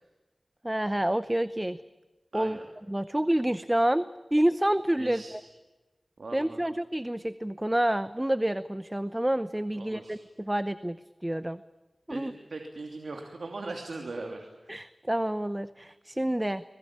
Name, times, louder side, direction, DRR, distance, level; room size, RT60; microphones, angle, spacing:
voice 1, 0.6-1.8 2.3-2.6 2.9-5.2 6.3-11.0 11.2-11.6 12.1-12.3 14.7-16.6, right 1 dB, 15° right, 14 dB, 0.8 m, -28 dB
voice 2, 2.3-2.7 5.0-5.5 6.2-6.7 9.7-10.2 12.1-14.8, right 3 dB, 80° right, 3 dB, 3.0 m, -40 dB
25.0 x 21.0 x 8.8 m, 1.1 s
wide cardioid pair, 65°, 0 cm